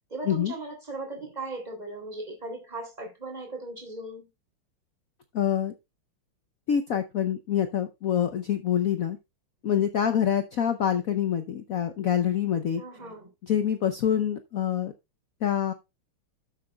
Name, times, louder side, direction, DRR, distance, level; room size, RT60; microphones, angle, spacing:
voice 1, 0.1-4.3 12.8-13.3, right 2 dB, 20° right, 3.0 m, -38 dB
voice 2, 5.3-5.7 6.7-9.2 9.6-12.8 13.5-14.9 15.4-15.7, left 9 dB, 70° left, 0.8 m, -26 dB
13.0 x 7.6 x 2.3 m
omnidirectional pair, 2.3 m